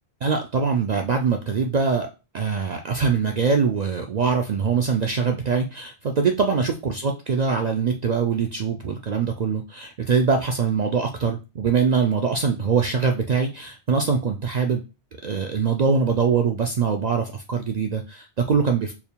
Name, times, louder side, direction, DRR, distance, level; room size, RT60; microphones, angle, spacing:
voice 1, 0.2-2.1 2.3-14.8 15.2-18.9, right 5 dB, 65° right, 4 dB, 0.4 m, -23 dB
4.4 x 3.5 x 2.2 m, 0.29 s
omnidirectional pair, 1.2 m